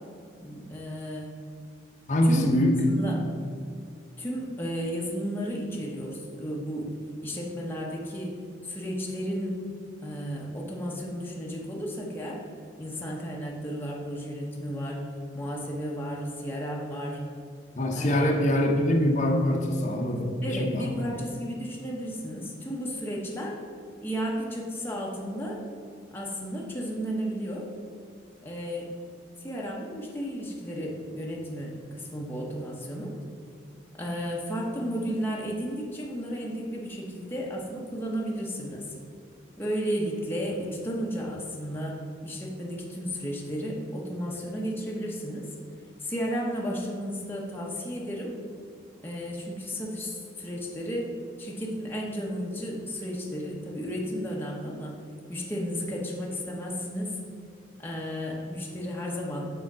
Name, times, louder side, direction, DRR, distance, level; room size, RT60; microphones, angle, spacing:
voice 1, 0.4-1.4 2.3-2.5 2.9-3.2 4.2-6.9 7.2-9.6 10.0-12.4 12.8-15.0 15.3-17.2 18.0-18.3 20.4-23.6 24.0-25.6 26.1-27.7 28.4-28.9 29.4-33.1 34.0-38.9 39.6-45.5 46.0-48.3 49.0-51.1 51.4-55.0 55.3-57.2 57.8-59.5, equal, 10° left, -3 dB, 0.9 m, -33 dB
voice 2, 2.1-2.8 17.8-20.9, left 1 dB, 40° left, 0 dB, 0.7 m, -24 dB
6.9 x 3.6 x 6.0 m, 2.2 s
head